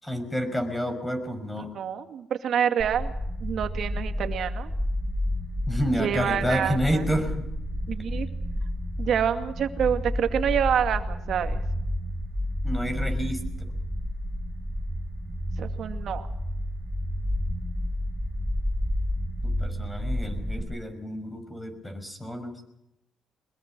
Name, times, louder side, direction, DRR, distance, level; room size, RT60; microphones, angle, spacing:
voice 1, 0.0-1.8 5.7-7.5 12.6-13.7 19.4-22.6, equal, 10° left, 8 dB, 5.7 m, -29 dB
voice 2, 1.6-3.1 3.4-4.7 6.0-7.0 7.9-8.3 9.0-11.6 15.6-16.3, right 8 dB, 65° right, 7 dB, 2.3 m, -27 dB
sound 1, 2.8-20.6, equal, 10° right, 3.2 m, -30 dB
23.0 x 21.0 x 6.2 m, 0.86 s
cardioid pair, 90°, 0 cm